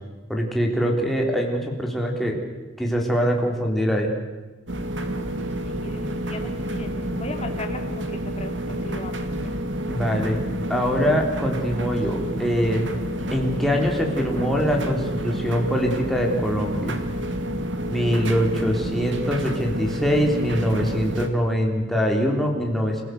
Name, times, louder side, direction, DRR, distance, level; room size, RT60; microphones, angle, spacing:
voice 1, 0.3-2.4 2.8-4.1 9.9-10.4 10.7-12.9 13.3-17.0 17.9-23.0, equal, ahead, 0 dB, 3.7 m, -23 dB
sound 1, 4.7-21.3, right 1 dB, 85° right, 2.2 m, -29 dB
voice 2, 5.7-9.5, left 2 dB, 35° left, 4 dB, 2.8 m, -38 dB
29.5 x 16.5 x 7.9 m, 1.2 s
head